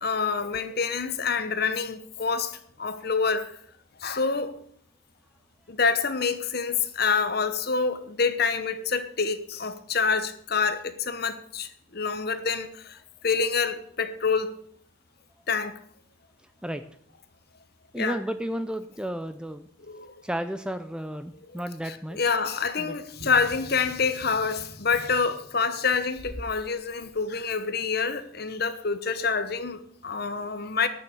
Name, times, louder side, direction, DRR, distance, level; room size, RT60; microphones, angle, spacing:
voice 1, 0.0-3.6 4.0-4.6 5.7-13.0 13.2-14.5 15.5-15.8 18.0-18.2 19.8-20.1 21.5-30.9, left 5 dB, 50° left, 1.0 m, -27 dB
voice 2, 17.9-19.7 20.2-22.2 22.8-22.9, equal, 5° right, 0.5 m, -32 dB
sound 1, 23.1-26.6 27.0-27.2, right 1 dB, 50° right, 1.6 m, -44 dB
12.0 x 6.9 x 8.3 m
head